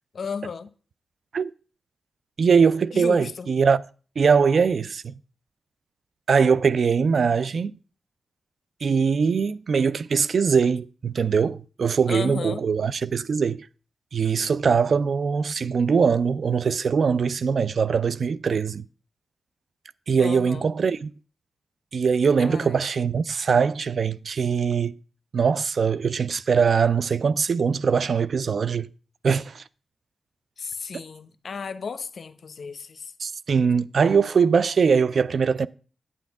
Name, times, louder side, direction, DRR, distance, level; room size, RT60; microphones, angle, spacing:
voice 1, 0.1-0.7 2.9-3.5 12.1-12.6 20.2-20.7 22.4-22.8 30.6-33.1, left 5 dB, 65° left, 0.7 m, -34 dB
voice 2, 2.4-3.8 4.2-5.1 6.3-7.7 8.8-13.7 14.1-18.8 20.1-21.1 21.9-25.0 25.3-28.9 29.2-29.6 33.2-35.7, right 6 dB, 70° right, 0.4 m, -22 dB
9.3 x 8.6 x 3.5 m
cardioid pair, 55°, 0 cm